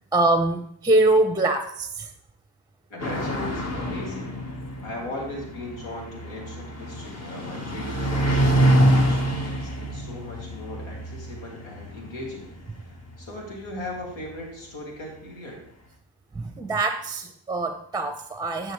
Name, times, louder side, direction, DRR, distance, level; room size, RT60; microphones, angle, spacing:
voice 1, 0.1-2.1 16.3-18.7, right 2 dB, 10° right, 7 dB, 0.9 m, -23 dB
voice 2, 2.9-4.4 4.8-12.5 12.7-15.6, left 1 dB, 70° left, -2 dB, 3.2 m, -38 dB
sound 1, 3.0-14.0, right 1 dB, 30° left, 1.9 m, -26 dB
10.5 x 6.5 x 3.4 m, 0.69 s
hypercardioid pair, 50°, 48 cm